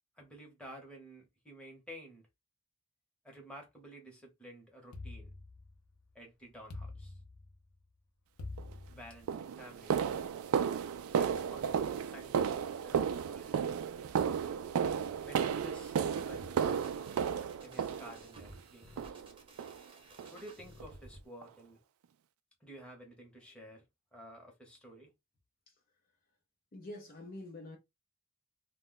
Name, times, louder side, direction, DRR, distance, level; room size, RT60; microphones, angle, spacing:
voice 1, 0.2-2.3 3.2-5.3 6.1-7.2 8.9-10.1 11.2-13.7 15.2-16.0 16.3-16.6 17.6-19.3 20.2-21.8 22.6-23.8 24.1-25.1, equal, 5° left, 0.9 m, -52 dB
sound 1, 4.9-6.0 6.7-7.7 8.4-9.5, left 2 dB, 90° left, 0.6 m, -46 dB
sound 2, 8.6-8.7 9.3-18.5 19.0-19.3 19.6-19.8 20.2-20.4 20.8-20.9 21.4-21.5, right 7 dB, 80° right, 0.3 m, -33 dB
sound 3, 15.9-21.2, right 1 dB, 25° right, 0.7 m, -55 dB
voice 2, 26.7-27.8, left 1 dB, 40° left, 0.6 m, -46 dB
2.2 x 2.1 x 3.7 m
head